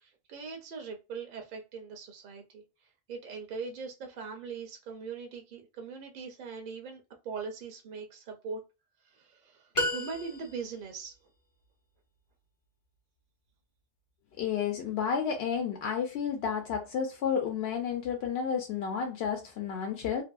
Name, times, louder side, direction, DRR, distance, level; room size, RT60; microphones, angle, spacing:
voice 1, 0.0-8.6 9.0-11.2, right 5 dB, 60° right, 0.6 m, -41 dB
sound 1, 9.7-10.9, left 1 dB, 40° left, 0.5 m, -32 dB
voice 2, 14.4-20.2, left 7 dB, 75° left, 0.8 m, -31 dB
2.6 x 2.5 x 2.3 m
omnidirectional pair, 1.1 m